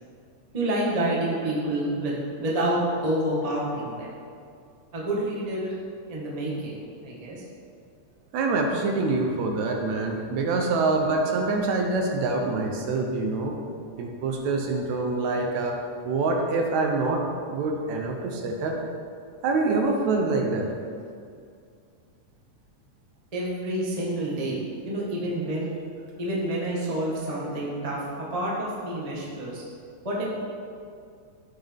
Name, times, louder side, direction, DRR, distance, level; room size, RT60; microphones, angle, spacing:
voice 1, 0.5-4.1 4.9-5.8 6.1-7.4 23.3-24.6 24.8-25.7 26.2-29.6 30.0-30.2, right 1 dB, 25° right, -5 dB, 0.8 m, -28 dB
voice 2, 8.3-13.6 14.0-15.8 16.0-18.8 19.4-20.7, right 3 dB, 75° right, 2 dB, 2.0 m, -25 dB
14.0 x 5.9 x 3.5 m, 2.3 s
omnidirectional pair, 3.5 m